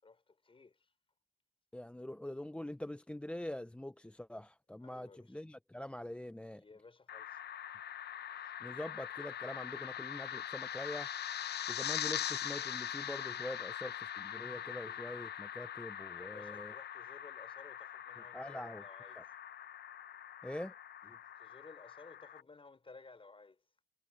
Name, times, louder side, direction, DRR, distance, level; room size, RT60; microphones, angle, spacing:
voice 1, 0.0-0.9 4.8-5.4 6.6-7.4 16.1-19.2 21.4-23.6, left 3 dB, 25° left, 5.2 m, -57 dB
voice 2, 1.7-6.6 8.4-11.1 11.7-16.7 18.3-18.8 19.1-19.2 20.4-20.7 21.0-21.2, left 1 dB, 5° left, 0.6 m, -44 dB
sound 1, 7.1-22.4, left 10 dB, 55° left, 0.8 m, -42 dB
cardioid pair, 90°, 20 cm